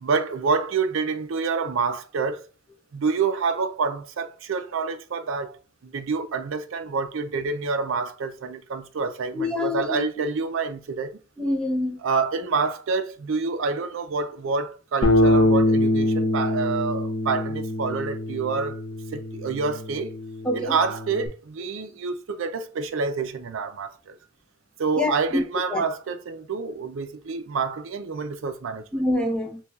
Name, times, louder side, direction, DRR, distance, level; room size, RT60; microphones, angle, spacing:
voice 1, 0.0-2.4 2.9-11.2 12.0-18.8 19.1-20.1 20.5-24.2 24.8-28.8, right 4 dB, 65° right, 0.4 m, -27 dB
voice 2, 9.3-10.0 11.4-12.0 20.4-20.7 25.0-25.4 25.7-25.8 28.9-29.6, left 2 dB, 5° left, 0.6 m, -25 dB
Bass guitar, 15.0-21.3, left 1 dB, 65° left, 0.9 m, -24 dB
6.7 x 2.3 x 2.3 m
head